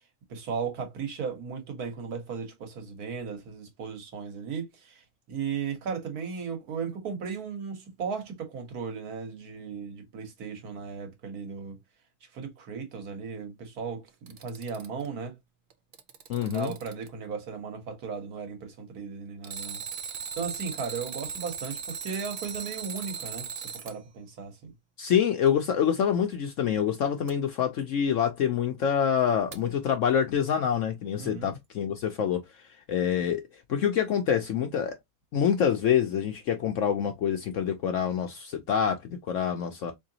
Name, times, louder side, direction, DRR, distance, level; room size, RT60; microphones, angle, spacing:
voice 1, 0.3-5.0 5.3-11.8 12.3-15.4 16.4-19.8 20.4-24.7 31.2-31.5, right 6 dB, 70° right, 1.7 m, -36 dB
Alarm, 14.1-15.1 15.7-17.1 19.4-24.0 27.3-27.4 29.5-29.6, right 7 dB, 85° right, 0.4 m, -38 dB
voice 2, 16.3-16.7 25.0-32.4 32.9-33.4 33.7-35.0 35.3-39.9, left 8 dB, 65° left, 0.8 m, -26 dB
3.7 x 3.3 x 2.7 m
omnidirectional pair, 1.7 m